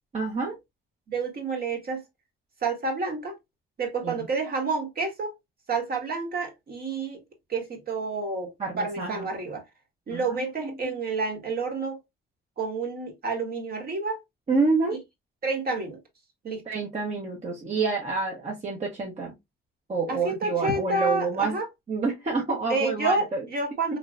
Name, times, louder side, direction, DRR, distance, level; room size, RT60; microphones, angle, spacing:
voice 1, 0.1-0.6 4.0-4.3 8.6-9.3 10.1-11.0 14.5-15.0 16.7-19.4 19.9-21.6 21.9-23.5 23.9-24.0, right 4 dB, 35° right, 0.9 m, -28 dB
voice 2, 1.1-2.0 2.6-3.3 3.8-5.3 5.7-7.2 7.5-9.6 10.1-12.0 12.6-14.2 15.4-16.0 16.4-16.6 20.1-21.6 22.7-24.0, right 3 dB, 50° right, 1.5 m, -29 dB
3.2 x 2.9 x 2.5 m
cardioid pair, 90°, 20 cm